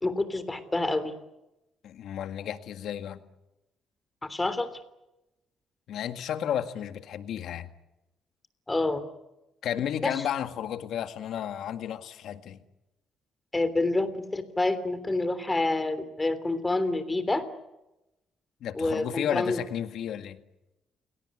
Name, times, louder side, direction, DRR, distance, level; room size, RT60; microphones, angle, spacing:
voice 1, 0.0-1.1 4.2-4.7 8.7-9.0 10.0-10.2 13.5-17.4 18.7-19.6, left 2 dB, 20° left, 12 dB, 3.3 m, -28 dB
voice 2, 1.8-3.2 5.9-7.7 9.6-12.6 18.6-20.4, left 9 dB, 75° left, 9 dB, 1.8 m, -32 dB
30.0 x 18.0 x 9.8 m, 0.95 s
cardioid pair, 90°, 0 cm